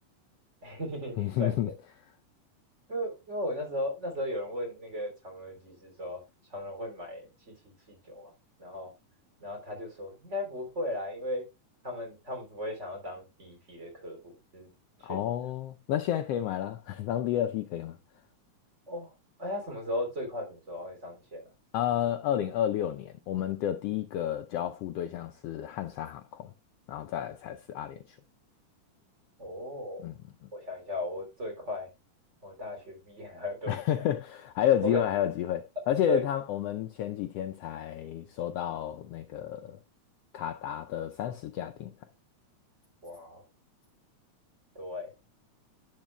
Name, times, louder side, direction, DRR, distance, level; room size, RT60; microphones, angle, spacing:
voice 1, 0.6-1.6 2.9-6.2 6.5-8.3 8.6-8.9 9.4-11.5 11.8-14.7 15.0-15.4 18.9-19.1 19.4-21.4 29.4-30.0 30.5-31.9 32.4-34.0 34.8-35.0 36.0-36.2 43.0-43.4 44.8-45.1, left 1 dB, 20° right, 3.5 m, -36 dB
voice 2, 1.2-1.7 15.0-18.0 21.7-26.5 26.9-28.2 30.0-30.1 33.7-39.8 40.3-41.9, left 11 dB, 90° left, 1.3 m, -31 dB
10.5 x 8.9 x 2.2 m
omnidirectional pair, 3.5 m